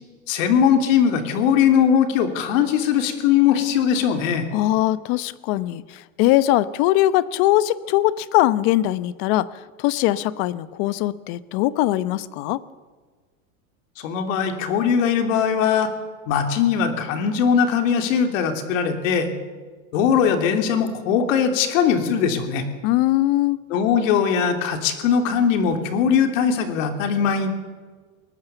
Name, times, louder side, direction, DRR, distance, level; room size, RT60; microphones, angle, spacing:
voice 1, 0.3-4.5 14.0-15.9 16.3-19.3 19.9-22.6 23.7-27.5, left 7 dB, 65° left, 7 dB, 3.2 m, -20 dB
voice 2, 4.5-9.5 9.8-12.6 22.8-23.6, left 15 dB, 45° left, 17 dB, 1.0 m, -21 dB
21.0 x 19.5 x 7.0 m, 1.5 s
supercardioid pair, 150°, 42 cm